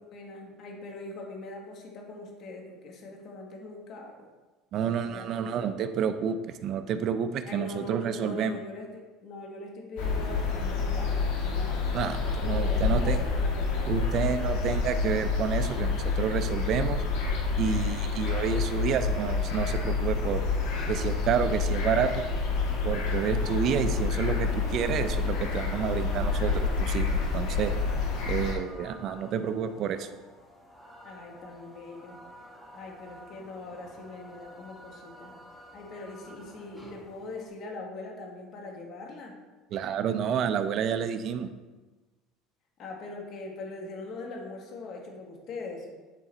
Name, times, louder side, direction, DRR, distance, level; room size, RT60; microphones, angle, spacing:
voice 1, 0.1-4.2 5.0-5.8 7.5-14.3 31.0-32.2 32.7-35.3 35.7-39.3 42.8-45.9, left 3 dB, 45° left, 1 dB, 1.5 m, -42 dB
voice 2, 4.7-8.6 11.9-13.2 13.9-17.0 17.6-20.4 20.9-22.2 22.8-27.7 28.3-30.1 39.7-41.5, right 7 dB, 45° right, 10 dB, 0.5 m, -29 dB
sound 1, 10.0-28.5, left 4 dB, 80° left, 1.7 m, -28 dB
sound 2, 22.4-37.5, equal, 10° left, 1.5 m, -51 dB
9.9 x 3.8 x 4.2 m, 1.2 s
cardioid pair, 140°, 0 cm